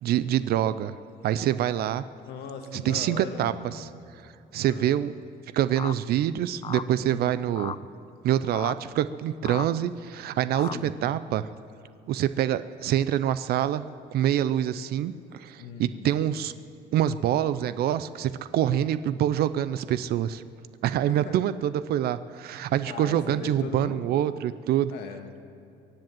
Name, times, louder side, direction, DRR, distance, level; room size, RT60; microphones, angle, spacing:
voice 1, 0.0-0.9 1.2-2.0 2.7-3.9 4.5-5.1 5.5-7.7 8.2-11.5 12.1-13.8 14.1-16.5 16.9-20.4 20.8-24.9, right 11 dB, 65° right, 14 dB, 0.5 m, -26 dB
voice 2, 2.3-3.9 4.7-4.9 7.1-7.4 10.7-11.0 15.6-16.2 21.1-21.4 22.8-24.0 24.9-25.5, left 6 dB, 80° left, 4 dB, 1.7 m, -39 dB
sound 1, 5.8-5.9 6.6-6.9 7.6-7.8 8.5-8.7 9.4-9.7 10.5-10.8, left 7 dB, 30° left, 0.5 m, -35 dB
23.0 x 7.8 x 7.6 m, 2.6 s
cardioid pair, 110°, 17 cm